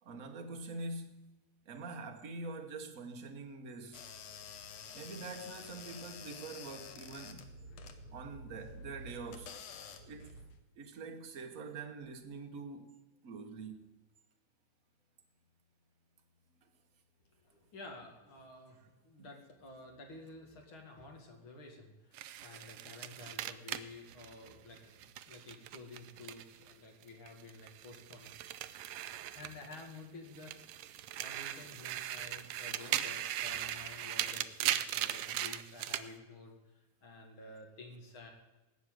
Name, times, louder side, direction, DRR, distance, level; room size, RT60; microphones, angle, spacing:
voice 1, 0.0-1.3 1.6-4.1 4.9-7.5 8.1-9.6 10.0-10.3 10.8-12.9 13.2-13.8 16.6-16.7 19.2-19.3, right 3 dB, 55° right, 0.9 m, -45 dB
sound 1, 3.9-10.6, left 4 dB, 70° left, 2.2 m, -49 dB
voice 2, 17.4-28.4 29.3-30.6 30.9-38.3, left 2 dB, 45° left, 2.8 m, -52 dB
sound 2, 22.1-26.7 27.0-30.0 30.3-36.1, right 12 dB, 80° right, 1.5 m, -39 dB
18.5 x 6.3 x 9.2 m
omnidirectional pair, 3.3 m